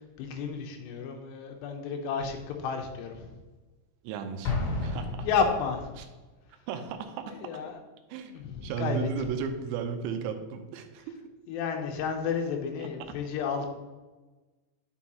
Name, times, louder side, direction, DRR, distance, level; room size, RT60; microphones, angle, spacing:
voice 1, 0.0-3.4 5.2-5.9 7.4-7.8 8.3-9.1 11.5-13.7, left 6 dB, 80° left, 4 dB, 2.7 m, -31 dB
voice 2, 4.0-5.3 6.0-6.1 6.5-7.5 8.1-11.2 12.8-13.2, right 6 dB, 80° right, 6 dB, 3.0 m, -35 dB
Explosion, 4.4-6.0, left 3 dB, 60° left, 3.1 m, -32 dB
9.4 x 6.3 x 2.8 m, 1.2 s
omnidirectional pair, 5.4 m